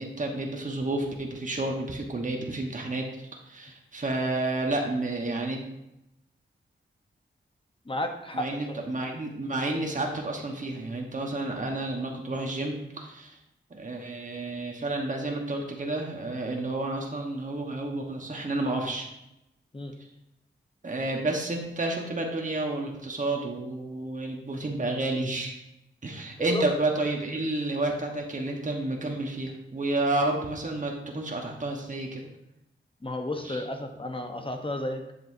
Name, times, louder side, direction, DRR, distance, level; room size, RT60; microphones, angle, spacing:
voice 1, 0.0-5.6 8.3-13.4 13.7-19.1 20.8-25.5 26.0-32.3 33.4-33.6, right 2 dB, 40° right, 1 dB, 1.3 m, -30 dB
voice 2, 7.9-8.8 19.7-19.9 26.5-26.6 33.0-35.1, left 1 dB, 25° left, 4 dB, 1.0 m, -33 dB
7.9 x 7.6 x 2.7 m, 0.88 s
cardioid pair, 65°, 20 cm